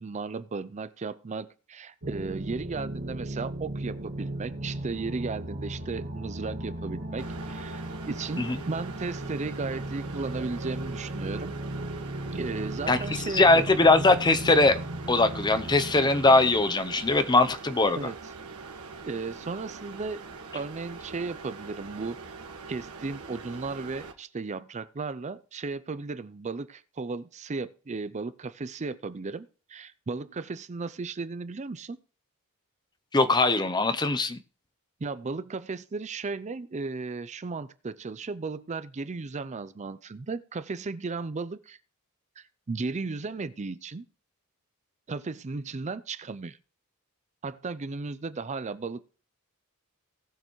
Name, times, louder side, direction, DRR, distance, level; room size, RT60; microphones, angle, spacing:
voice 1, 0.0-11.5 12.3-13.7 18.0-18.2 19.1-20.2 20.5-22.2 22.7-32.0 35.0-41.8 42.4-44.0 45.1-46.6 47.4-49.0, right 4 dB, 30° right, 14 dB, 0.5 m, -35 dB
sound 1, 2.0-16.6, right 1 dB, 50° right, 1.7 m, -36 dB
sound 2, 7.2-24.1, right 4 dB, 75° right, 1.5 m, -43 dB
voice 2, 13.3-14.8 15.1-18.0 33.1-34.4, left 2 dB, 20° left, 11 dB, 0.6 m, -21 dB
18.5 x 6.6 x 3.1 m, 0.38 s
head